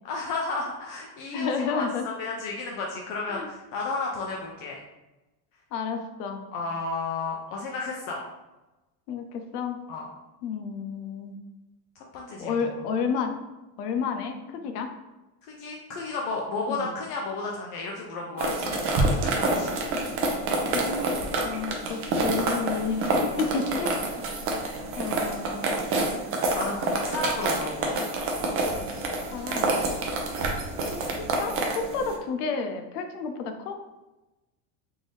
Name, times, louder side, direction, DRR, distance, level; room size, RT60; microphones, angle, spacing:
voice 1, 0.0-4.8 6.5-8.2 9.9-10.1 12.0-12.8 15.5-19.8 23.3-23.5 26.5-28.1 30.0-30.2, left 3 dB, 45° left, -1 dB, 0.5 m, -33 dB
voice 2, 1.3-2.0 3.3-3.5 5.7-6.4 9.1-9.8 10.4-11.4 12.4-13.3 13.8-14.9 16.7-16.9 20.7-24.1 25.0-26.2 29.3-29.8 30.9-33.8, left 5 dB, 85° left, 6 dB, 0.7 m, -31 dB
sound 1, 18.4-32.1, right 2 dB, 30° right, 0.5 m, -28 dB
3.7 x 2.6 x 3.2 m, 1.0 s
cardioid pair, 155°, 45 cm